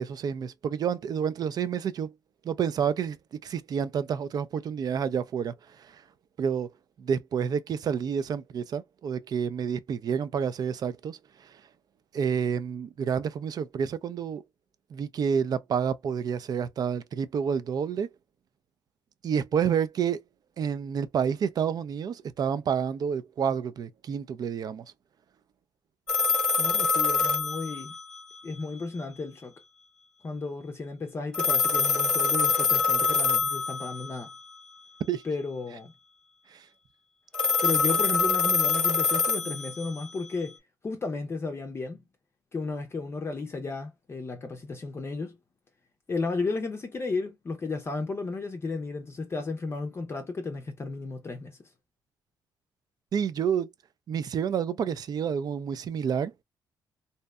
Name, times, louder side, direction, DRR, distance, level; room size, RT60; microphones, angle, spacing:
voice 1, 0.0-2.1 2.4-3.2 3.4-6.0 6.4-6.7 7.0-11.6 12.1-14.4 14.9-18.1 19.2-20.2 20.6-24.9 35.1-35.2 36.5-36.6 53.1-53.7 54.1-56.3, right 7 dB, 55° right, 0.3 m, -29 dB
sound 1, 26.1-28.4 31.3-34.2 37.3-40.3, left 4 dB, 10° left, 0.8 m, -25 dB
voice 2, 26.6-27.9 28.4-29.5 30.2-34.3 35.2-35.9 37.6-40.6 40.8-42.0 42.5-45.4 46.1-51.6, left 3 dB, 30° left, 0.5 m, -33 dB
2.7 x 2.1 x 2.2 m
cardioid pair, 80°, 8 cm